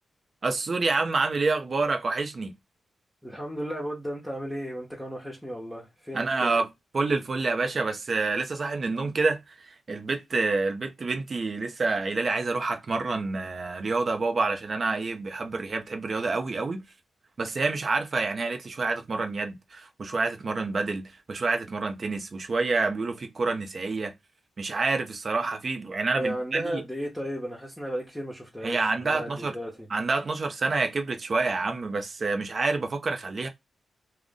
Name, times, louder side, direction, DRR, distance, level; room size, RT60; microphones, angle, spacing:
voice 1, 0.4-2.5 6.1-6.7 6.9-16.8 17.4-24.1 24.6-26.8 28.6-29.6 29.9-33.5, right 3 dB, 50° right, 0.7 m, -28 dB
voice 2, 3.2-6.5 26.1-29.9, equal, 5° left, 0.9 m, -34 dB
2.4 x 2.2 x 3.7 m
cardioid pair, 55°, 0 cm